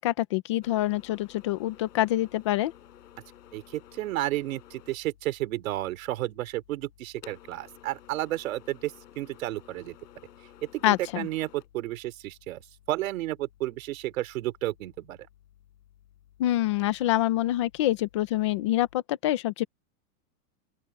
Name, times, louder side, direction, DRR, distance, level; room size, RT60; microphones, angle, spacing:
voice 1, 0.0-2.7 10.8-11.3 16.4-19.6, left 14 dB, 20° left, 0.5 m, -26 dB
sound 1, 0.6-19.0, left 11 dB, 90° left, 7.3 m, -55 dB
voice 2, 3.5-10.0 10.7-12.6 12.9-15.2, right 16 dB, 60° right, 3.2 m, -32 dB
open air
supercardioid pair, 175°, 47 cm